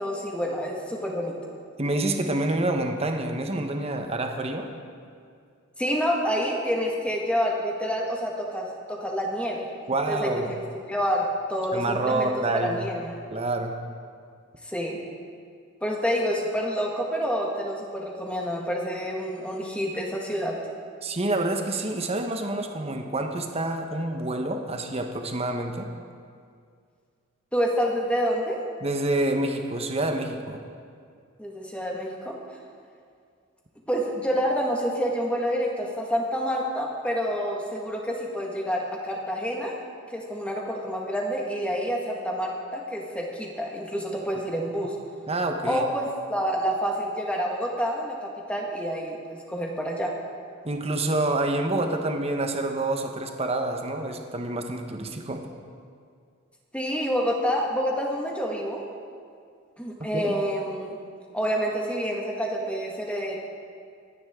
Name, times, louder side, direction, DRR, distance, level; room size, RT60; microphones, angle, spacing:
voice 1, 0.0-1.3 5.8-9.7 10.1-12.3 12.6-13.2 14.7-15.1 15.8-20.6 27.5-28.6 31.4-32.4 33.9-39.8 40.1-44.9 45.7-50.1 56.7-58.8 59.8-61.0 61.3-63.4, equal, 5° left, -1 dB, 1.6 m, -28 dB
voice 2, 1.8-4.7 9.9-10.5 11.7-12.9 13.3-13.8 21.0-25.9 28.8-30.6 45.3-45.8 50.6-55.4 60.1-60.4, right 2 dB, 30° right, 4 dB, 1.1 m, -27 dB
24.0 x 9.9 x 3.7 m, 2.2 s
head